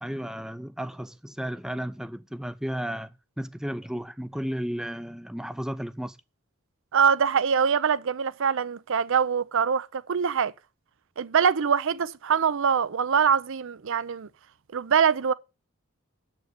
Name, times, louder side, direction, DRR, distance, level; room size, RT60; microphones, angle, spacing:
voice 1, 0.0-6.2, equal, 5° right, 0.5 m, -33 dB
voice 2, 6.9-10.5 11.2-14.3 14.7-15.3, right 7 dB, 60° right, 0.5 m, -23 dB
8.1 x 6.8 x 6.6 m
head